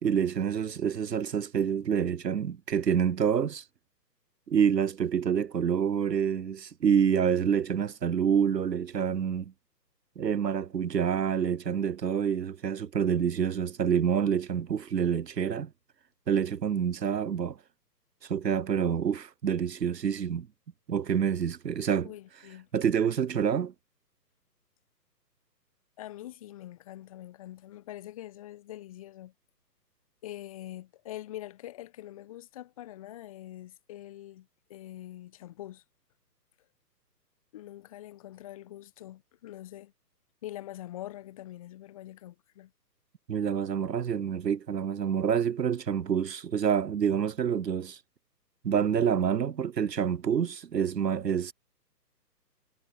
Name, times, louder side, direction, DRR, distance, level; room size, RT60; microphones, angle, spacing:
voice 1, 0.0-3.6 4.5-9.5 10.2-15.7 16.3-17.6 18.2-20.5 20.9-22.1 22.7-23.7 43.3-48.0 48.6-51.5, right 8 dB, 75° right, 0.8 m, -27 dB
voice 2, 22.0-22.7 26.0-29.3 30.2-35.8 37.5-39.9 40.4-42.7, left 14 dB, 20° left, 1.0 m, -44 dB
figure-of-eight pair, 135°, 50 cm